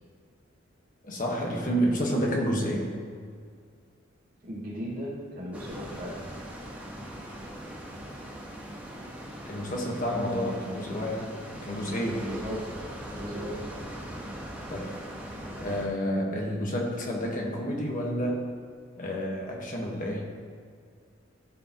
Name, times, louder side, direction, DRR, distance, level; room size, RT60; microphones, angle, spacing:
voice 1, 1.0-2.9 9.4-11.3 11.6-12.3 14.7-14.9 15.6-18.4 19.0-20.2, equal, 45° left, -1 dB, 1.3 m, -29 dB
voice 2, 4.4-6.2 12.1-12.8 13.1-13.7, equal, 45° right, -4 dB, 1.8 m, -37 dB
sound 1, 5.5-15.9, right 1 dB, 5° right, 1.2 m, -41 dB
13.5 x 5.1 x 3.0 m, 2.1 s
head